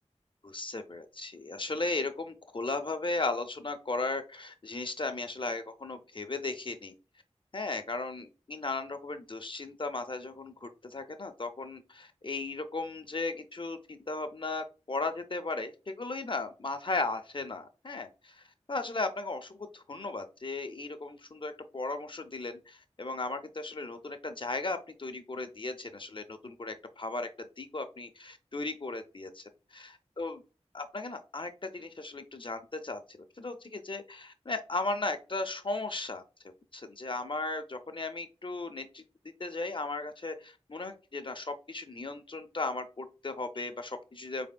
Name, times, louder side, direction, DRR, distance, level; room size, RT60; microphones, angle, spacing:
voice 1, 0.4-6.9 7.5-29.4 29.7-30.4 30.7-36.2 36.7-39.0 39.4-44.5, left 3 dB, 45° left, 8 dB, 0.5 m, -36 dB
4.0 x 3.4 x 2.2 m, 0.33 s
wide cardioid pair, 50°, 12 cm